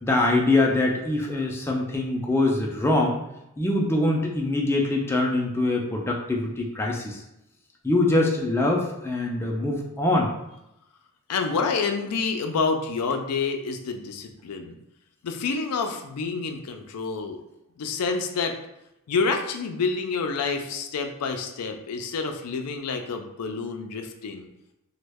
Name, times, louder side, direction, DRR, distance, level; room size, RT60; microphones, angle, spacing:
voice 1, 0.0-3.2 3.6-7.2 7.8-10.3, left 2 dB, 10° left, -1 dB, 0.3 m, -23 dB
voice 2, 11.3-14.8 15.2-17.4 17.8-18.6 19.1-24.5, left 4 dB, 90° left, 5 dB, 0.4 m, -28 dB
3.0 x 2.1 x 3.4 m, 0.85 s
head